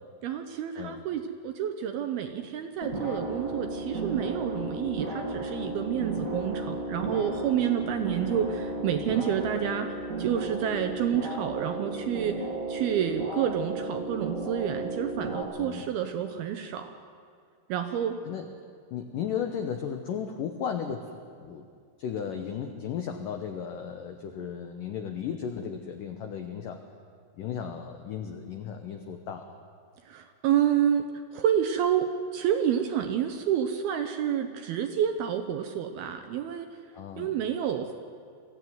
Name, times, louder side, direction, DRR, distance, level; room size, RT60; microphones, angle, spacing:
voice 1, 0.2-16.9 17.7-18.2 30.1-31.0 31.3-36.7 37.2-37.9, right 9 dB, 75° right, 7 dB, 2.3 m, -29 dB
sound 1, 2.8-15.4, right 2 dB, 50° right, 1.0 m, -34 dB
voice 2, 18.9-21.7 22.0-26.8 27.4-29.6 36.9-37.4, left 7 dB, 85° left, 6 dB, 1.9 m, -35 dB
23.5 x 15.0 x 9.4 m, 2.3 s
omnidirectional pair, 5.3 m